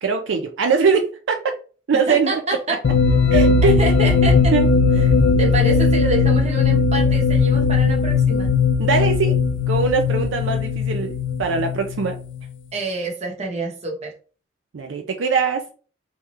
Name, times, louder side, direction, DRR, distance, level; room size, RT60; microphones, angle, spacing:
voice 1, 0.0-1.4 1.9-2.4 3.3-3.7 4.5-5.0 8.8-9.4 9.7-12.2 14.7-15.7, right 5 dB, 75° right, 0.5 m, -22 dB
voice 2, 2.1-2.8 3.6-4.5 5.4-8.5 12.7-14.1, right 2 dB, 35° right, 1.0 m, -26 dB
sound 1, 2.8-12.5, left 4 dB, 70° left, 0.4 m, -18 dB
3.5 x 2.9 x 3.1 m
head